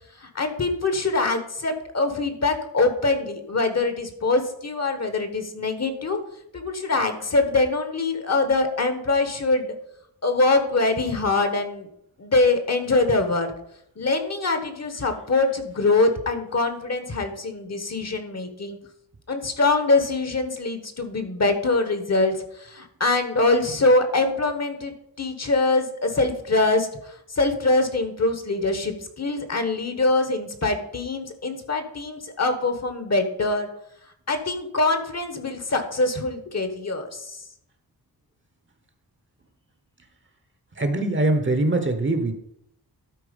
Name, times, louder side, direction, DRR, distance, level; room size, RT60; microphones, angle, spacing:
voice 1, 0.2-6.2 6.5-9.7 10.2-11.9 12.2-13.5 14.0-18.8 19.3-33.7 34.3-37.4, left 3 dB, 40° left, 8 dB, 1.2 m, -23 dB
voice 2, 40.8-42.3, right 2 dB, 30° right, 7 dB, 1.0 m, -22 dB
12.5 x 4.5 x 5.2 m, 0.76 s
wide cardioid pair, 120°, 39 cm